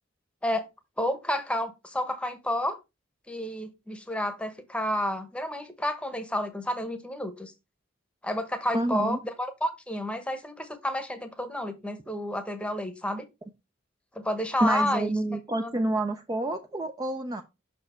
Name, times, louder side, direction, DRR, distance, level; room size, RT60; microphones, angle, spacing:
voice 1, 1.0-2.8 3.3-7.5 8.2-13.2 14.1-15.2 15.6-15.7, left 1 dB, 5° left, 8 dB, 0.9 m, -30 dB
voice 2, 8.7-9.2 14.6-17.4, right 1 dB, 20° right, 6 dB, 0.4 m, -28 dB
6.0 x 4.3 x 4.2 m, 0.24 s
head